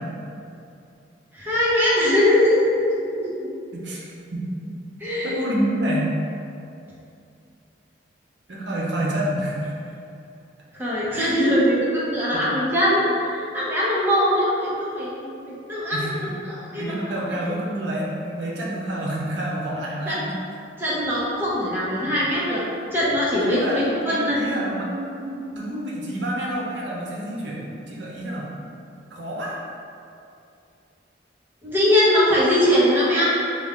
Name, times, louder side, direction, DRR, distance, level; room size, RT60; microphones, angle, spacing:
voice 1, 1.3-3.4 5.0-5.3 10.8-17.0 17.3-17.4 20.1-20.2 20.8-22.6 22.9-24.4 31.6-33.3, left 1 dB, 10° right, -8 dB, 0.9 m, -21 dB
voice 2, 3.7-4.0 4.3-4.4 5.2-6.1 8.5-9.9 11.1-11.3 15.9-16.1 16.7-20.3 22.0-22.1 23.4-28.5 29.1-29.6, right 1 dB, 70° right, -4 dB, 0.7 m, -28 dB
6.0 x 2.3 x 3.6 m, 2.6 s
head